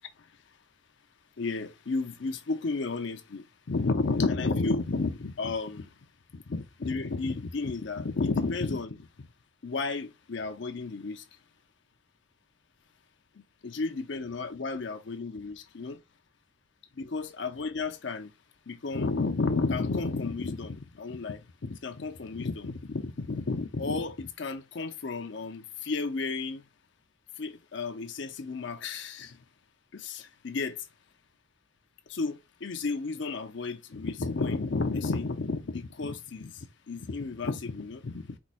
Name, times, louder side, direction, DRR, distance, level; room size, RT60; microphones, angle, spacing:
voice 1, 1.4-5.9 6.3-9.3 9.6-11.2 13.4-16.0 17.0-18.3 18.7-26.6 27.4-29.4 29.9-30.9 32.1-38.4, left 3 dB, 60° left, 0.6 m, -32 dB
4.7 x 2.3 x 4.1 m
head